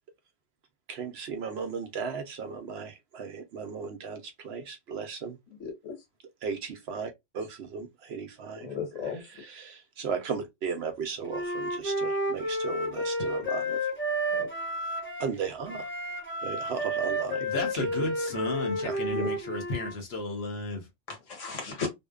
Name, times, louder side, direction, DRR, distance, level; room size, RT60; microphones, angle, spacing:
voice 1, 0.9-5.4 6.4-8.7 9.3-13.9 15.2-15.8 16.4-18.1 18.8-19.0, right 6 dB, 65° right, 0.7 m, -36 dB
voice 2, 5.6-6.0 8.6-9.2 14.3-14.5 19.1-19.3 21.1-21.9, left 5 dB, 75° left, 1.4 m, -35 dB
Wind instrument woodwind instrument, 11.3-15.3 15.7-19.9, equal, 15° left, 0.5 m, -31 dB
voice 3, 17.4-20.9, left 2 dB, 55° left, 1.0 m, -33 dB
2.6 x 2.2 x 2.2 m
omnidirectional pair, 1.3 m